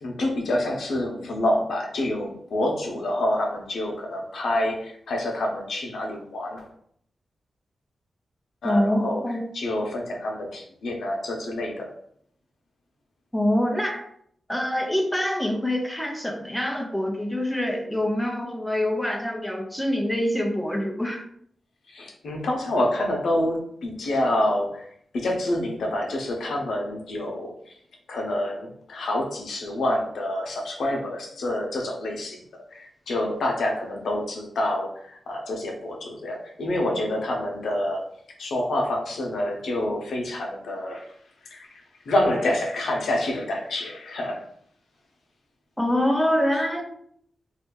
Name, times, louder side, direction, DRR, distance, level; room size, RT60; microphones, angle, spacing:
voice 1, 0.0-6.7 8.6-9.2 9.5-11.9 21.9-24.9 25.1-27.8 28.1-32.4 32.7-38.1 38.4-41.1 41.4-44.4, left 1 dB, 90° left, 0 dB, 0.7 m, -27 dB
voice 2, 8.6-9.4 13.3-14.0 14.5-21.2 45.8-46.8, left 1 dB, ahead, 2 dB, 0.5 m, -25 dB
2.6 x 2.4 x 3.7 m, 0.67 s
wide cardioid pair, 145°, 0 cm